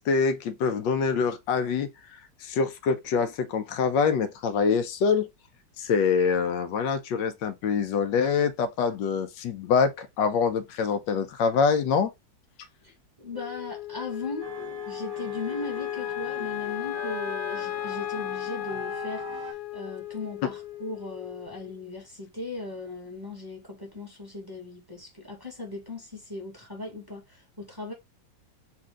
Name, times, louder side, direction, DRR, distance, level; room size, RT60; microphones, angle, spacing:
voice 1, 0.0-1.9 2.4-5.3 5.8-12.1, left 5 dB, 90° left, 1.3 m, -25 dB
voice 2, 12.8-14.5 14.8-27.9, left 3 dB, 15° right, 1.4 m, -38 dB
Wind instrument woodwind instrument, 13.3-21.8, left 14 dB, 70° left, 0.8 m, -35 dB
sound 1, 14.4-19.5, right 4 dB, 75° right, 1.5 m, -41 dB
4.3 x 2.6 x 3.6 m
omnidirectional pair, 1.9 m